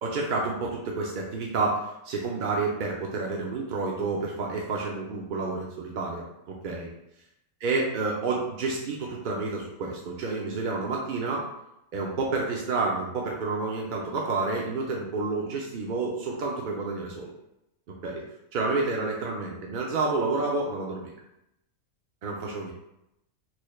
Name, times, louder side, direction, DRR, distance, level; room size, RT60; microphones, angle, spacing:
voice 1, 0.0-6.2 6.6-6.9 7.6-11.5 11.9-17.3 18.0-18.2 18.5-21.1 22.2-22.7, right 3 dB, 60° right, -1 dB, 0.5 m, -29 dB
4.3 x 3.2 x 2.3 m, 0.85 s
omnidirectional pair, 1.4 m